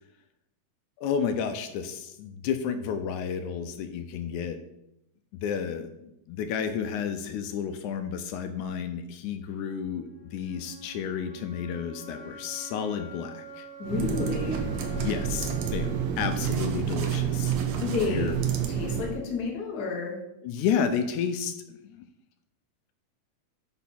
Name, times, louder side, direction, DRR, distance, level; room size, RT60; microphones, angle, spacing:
voice 1, 1.0-4.6 5.4-13.7 14.9-15.9 16.2-17.5 18.1-18.4 20.4-22.0, left 7 dB, 80° left, 8 dB, 1.9 m, -31 dB
sound 1, 9.5-17.5, right 3 dB, 15° right, 1.0 m, -46 dB
voice 2, 13.8-14.7 17.8-18.3 18.7-20.2, left 4 dB, 50° left, -1 dB, 1.1 m, -30 dB
sound 2, 13.8-19.2, right 8 dB, 90° right, 1.3 m, -29 dB
5.6 x 4.1 x 5.7 m, 0.84 s
omnidirectional pair, 3.6 m